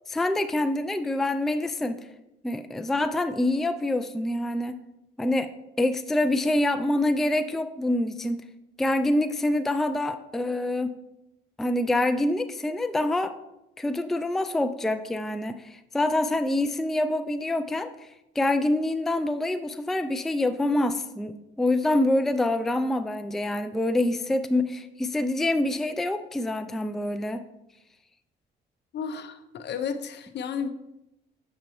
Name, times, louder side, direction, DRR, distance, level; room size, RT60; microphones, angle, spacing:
voice 1, 0.1-2.0 2.4-4.8 5.2-5.5 5.8-8.4 8.8-10.9 11.6-13.3 13.8-17.9 18.4-27.4, left 1 dB, ahead, 10 dB, 0.3 m, -26 dB
voice 2, 28.9-30.7, left 6 dB, 60° left, 10 dB, 0.6 m, -32 dB
6.7 x 6.4 x 3.0 m, 0.90 s
cardioid pair, 90°, 20 cm